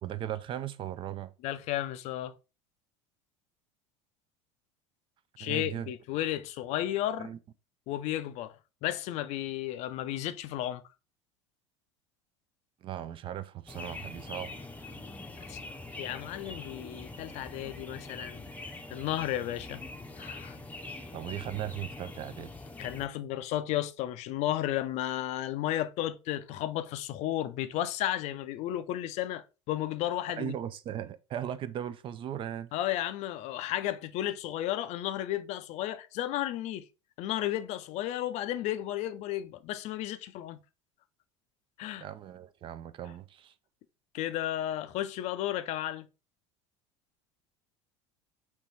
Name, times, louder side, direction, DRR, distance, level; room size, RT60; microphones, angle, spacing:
voice 1, 0.0-1.3 5.4-5.9 7.2-7.4 12.8-14.5 21.1-22.5 30.3-32.7 42.0-43.5, right 10 dB, 35° right, 0.4 m, -37 dB
voice 2, 1.4-2.3 5.4-7.3 7.9-8.5 8.8-10.8 15.5-15.6 16.0-18.5 18.9-19.8 20.2-20.6 22.8-30.5 32.7-36.9 37.2-40.6 41.8-42.1 44.1-46.1, left 13 dB, 45° left, 0.5 m, -33 dB
sound 1, 13.7-23.1, left 2 dB, 10° left, 0.7 m, -43 dB
4.5 x 3.0 x 4.0 m
figure-of-eight pair, 70°, 16 cm